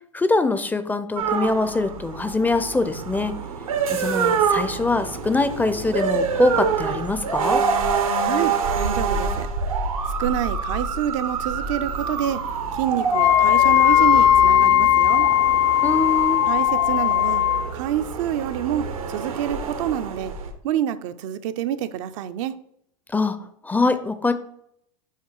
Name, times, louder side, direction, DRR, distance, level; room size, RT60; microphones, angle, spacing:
voice 1, 0.1-3.3 3.9-7.6 15.8-16.4 23.1-23.4 23.6-24.3, left 3 dB, 10° left, 11 dB, 0.4 m, -23 dB
sound 1, 1.2-20.5, right 5 dB, 85° right, 1.0 m, -26 dB
voice 2, 8.2-9.5 10.2-12.4 12.7-15.3 16.5-17.4 17.7-20.3 20.6-22.6, right 10 dB, 65° right, 11 dB, 0.5 m, -27 dB
Wind instrument woodwind instrument, 13.1-17.7, left 12 dB, 65° left, 0.8 m, -17 dB
5.8 x 4.6 x 4.5 m, 0.71 s
hypercardioid pair, 105°, 17 cm